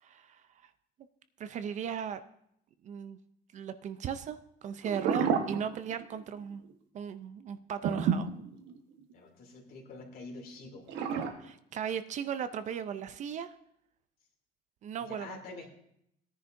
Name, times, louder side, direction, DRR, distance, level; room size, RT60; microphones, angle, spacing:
voice 1, 0.0-0.7 1.4-2.2 2.8-3.2 3.5-6.6 6.9-8.3 11.4-13.5 14.8-15.4, right 8 dB, 40° right, 11 dB, 0.5 m, -37 dB
sound 1, 4.8-6.2 6.5-6.7 7.8-9.1 10.9-11.3, right 7 dB, 85° right, 1.2 m, -30 dB
voice 2, 9.1-11.1 15.0-15.7, left 3 dB, 55° left, 2 dB, 2.7 m, -47 dB
17.5 x 10.0 x 2.6 m, 0.74 s
cardioid pair, 150°, 18 cm